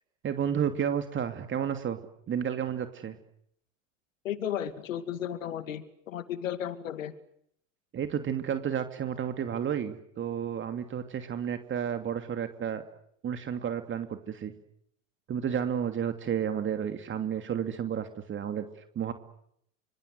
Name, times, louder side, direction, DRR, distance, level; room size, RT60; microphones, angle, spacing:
voice 1, 0.2-2.0 2.3-3.2 7.9-12.8 13.2-14.5 15.3-19.1, right 8 dB, 30° right, 8 dB, 2.8 m, -31 dB
voice 2, 4.2-7.1, left 10 dB, 85° left, 12 dB, 2.6 m, -34 dB
27.0 x 25.5 x 8.1 m, 0.71 s
hypercardioid pair, 105°, 38 cm